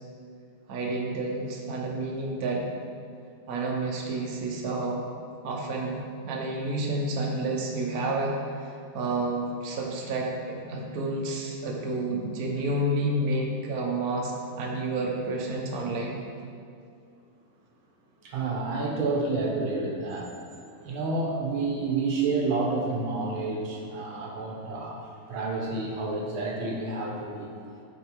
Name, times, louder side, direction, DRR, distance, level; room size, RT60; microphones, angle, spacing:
voice 1, 0.7-2.6 3.5-5.0 5.4-6.0 6.3-16.2, right 2 dB, 55° right, -1 dB, 1.3 m, -30 dB
voice 2, 18.2-20.3 20.9-25.0 25.3-27.5, right 3 dB, 85° right, -1 dB, 1.9 m, -29 dB
8.7 x 4.7 x 4.7 m, 2.5 s
omnidirectional pair, 2.2 m